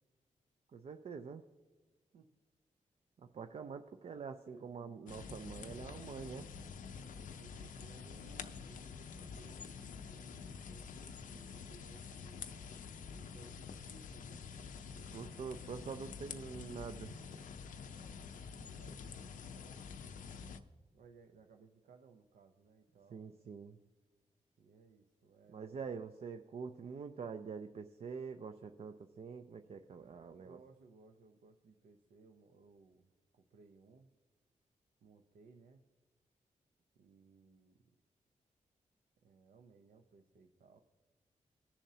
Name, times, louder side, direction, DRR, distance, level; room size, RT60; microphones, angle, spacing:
voice 1, 0.7-1.4 3.2-6.6 15.0-17.2 23.1-23.8 25.5-30.6, right 5 dB, 50° right, 8 dB, 0.4 m, -46 dB
voice 2, 4.4-5.2 7.1-12.7 13.1-14.5 17.8-19.8 20.9-23.6 24.6-26.0 30.3-34.1 35.0-35.8 36.9-38.0 39.2-40.8, right 4 dB, 85° right, 4 dB, 0.7 m, -62 dB
sound 1, 5.1-20.6, left 6 dB, 85° left, 0.6 m, -48 dB
19.0 x 7.1 x 2.8 m, 1.3 s
cardioid pair, 90°, 13 cm